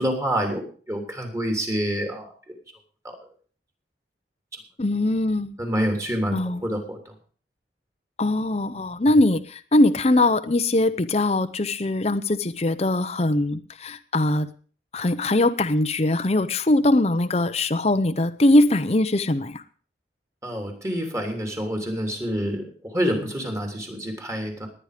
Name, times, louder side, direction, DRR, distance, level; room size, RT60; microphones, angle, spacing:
voice 1, 0.0-2.3 3.0-3.1 5.6-7.0 20.4-24.7, equal, 15° right, 3 dB, 3.3 m, -27 dB
voice 2, 4.8-5.6 6.3-6.6 8.2-14.5 14.9-19.6, left 1 dB, 35° left, 10 dB, 0.8 m, -21 dB
18.5 x 10.0 x 5.1 m, 0.41 s
head